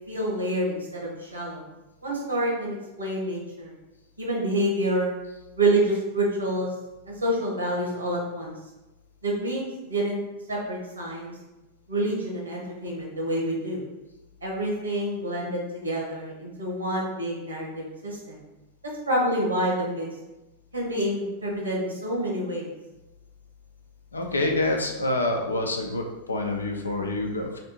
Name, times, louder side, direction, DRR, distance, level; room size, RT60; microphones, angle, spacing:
voice 1, 0.1-1.6 2.0-3.7 4.2-5.1 5.6-6.7 7.1-8.5 9.2-10.2 10.5-11.3 11.9-13.8 14.4-18.4 19.1-20.1 20.7-22.7, right 1 dB, 80° right, -3 dB, 1.2 m, -27 dB
voice 2, 24.1-27.6, left 2 dB, 75° left, 2 dB, 0.6 m, -27 dB
3.3 x 2.7 x 4.2 m, 1.0 s
figure-of-eight pair, 90°, 0 cm